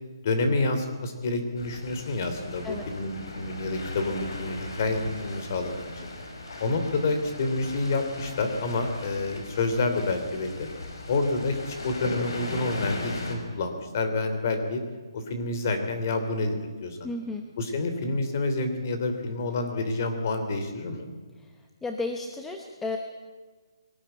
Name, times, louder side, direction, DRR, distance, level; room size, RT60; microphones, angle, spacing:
voice 1, 0.2-6.1 6.6-10.7 11.1-14.8 15.1-16.5 16.8-17.1 17.6-21.0, left 3 dB, 35° left, 7 dB, 3.0 m, -28 dB
sound 1, 1.6-13.4, left 2 dB, 60° left, 5.4 m, -38 dB
voice 2, 17.0-17.5 21.8-23.0, left 3 dB, 5° left, 3 dB, 0.9 m, -33 dB
22.0 x 18.5 x 9.0 m, 1.4 s
hypercardioid pair, 170°, 3 cm